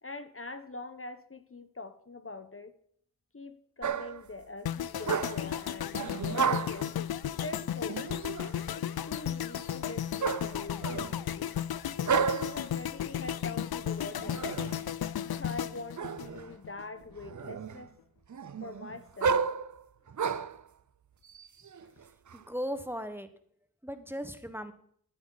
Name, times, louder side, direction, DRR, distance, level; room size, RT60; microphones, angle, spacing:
voice 1, 0.0-2.7 3.3-6.9 7.3-8.0 8.7-11.5 12.0-14.5 15.2-17.9 18.6-19.4 20.2-20.3 21.8-21.9, left 3 dB, 35° left, 10 dB, 1.0 m, -43 dB
sound 1, 3.8-4.3 5.0-5.6 5.9-6.9 7.9-8.6 10.2-11.2 12.0-12.7 14.1-14.8 16.0-16.5 17.0-17.9 18.3-20.6 21.3-22.4, right 6 dB, 55° right, 0.6 m, -32 dB
sound 2, 4.7-16.8 17.1-17.4, left 10 dB, 85° left, 0.5 m, -34 dB
voice 2, 22.3-23.3 23.8-24.7, equal, 5° right, 9 dB, 1.3 m, -37 dB
14.5 x 9.8 x 4.0 m, 0.63 s
cardioid pair, 45°, 36 cm